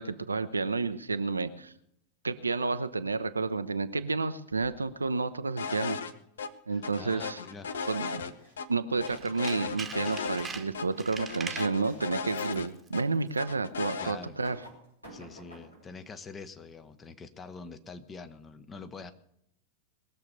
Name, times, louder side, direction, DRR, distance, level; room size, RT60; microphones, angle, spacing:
voice 1, 0.0-1.7 2.2-6.0 6.7-7.4 7.9-8.2 8.7-14.6, right 4 dB, 80° right, 11 dB, 0.7 m, -30 dB
sound 1, 4.5-5.0 7.9-8.6 10.4-10.5 10.9-11.1 11.8-12.2 12.8-12.9 14.2-15.9, right 1 dB, 85° left, 5.1 m, -51 dB
sound 2, 5.6-6.1 6.4-6.5 6.8-8.7 9.0-10.5 10.7-10.9 11.2-13.0 13.4-14.1, left 5 dB, 65° left, 0.9 m, -36 dB
voice 2, 6.7-7.7 14.0-14.4 15.1-19.1, left 4 dB, 20° left, 11 dB, 1.0 m, -45 dB
Tools, 9.0-11.8 12.3-12.6 12.9-13.0, right 5 dB, 15° right, 1.3 m, -41 dB
20.5 x 7.1 x 6.7 m, 0.74 s
figure-of-eight pair, 90°, 0 cm